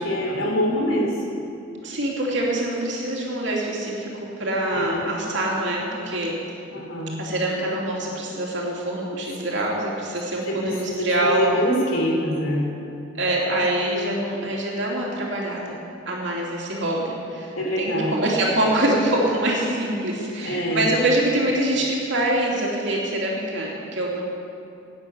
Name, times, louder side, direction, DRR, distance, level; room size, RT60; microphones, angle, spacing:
voice 1, 0.0-1.3 4.7-5.0 6.7-7.2 10.5-12.6 17.5-18.1 20.4-20.9, equal, 85° left, -1 dB, 3.2 m, -25 dB
voice 2, 1.8-6.4 7.2-11.4 13.1-15.8 16.1-17.5 17.8-24.2, right 1 dB, 65° right, -3 dB, 2.9 m, -25 dB
11.5 x 9.6 x 8.2 m, 2.7 s
head